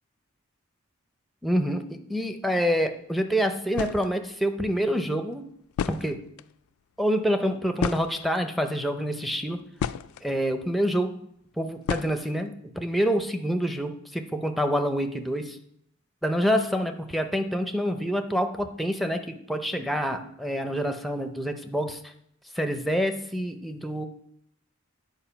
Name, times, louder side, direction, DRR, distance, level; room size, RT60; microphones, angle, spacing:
voice 1, 1.4-5.4 5.9-6.2 7.0-9.6 10.2-11.2 11.6-15.6 16.2-22.0 22.6-24.0, equal, ahead, 6 dB, 0.5 m, -27 dB
sound 1, 3.4-3.5 3.7-4.1 5.3-5.4 5.7-6.5 7.8-8.6 9.3-10.3 11.9-12.5, left 7 dB, 75° left, 0.3 m, -32 dB
8.9 x 4.7 x 5.7 m, 0.71 s
head